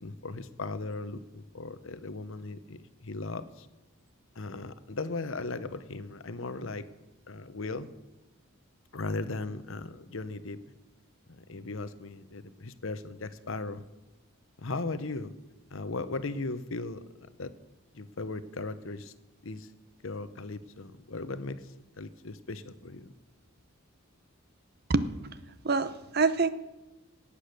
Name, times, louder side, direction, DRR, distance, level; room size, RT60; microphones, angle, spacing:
voice 1, 0.0-3.7 4.4-6.9 7.3-7.9 8.9-10.6 11.3-13.8 14.6-15.3 15.7-17.0 17.4-17.5 17.9-19.1 19.4-19.7 20.0-21.7 22.0-23.1, left 3 dB, 65° left, 13 dB, 0.9 m, -37 dB
voice 2, 24.9-25.3 25.6-26.5, right 4 dB, 45° right, 13 dB, 0.7 m, -26 dB
18.0 x 8.6 x 6.6 m, 1.0 s
head